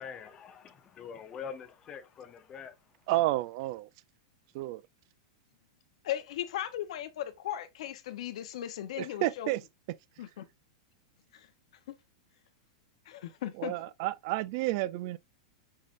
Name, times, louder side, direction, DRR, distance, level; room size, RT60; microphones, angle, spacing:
voice 1, 0.0-2.8, left 7 dB, 20° left, 0.7 m, -44 dB
voice 2, 3.1-3.9 4.5-4.8 9.0-9.6 13.6-15.2, right 17 dB, 45° right, 0.4 m, -30 dB
voice 3, 6.0-9.5 10.2-10.5 11.3-11.5 13.1-13.7, left 12 dB, 65° left, 0.7 m, -37 dB
5.5 x 3.2 x 2.4 m
supercardioid pair, 155°, 3 cm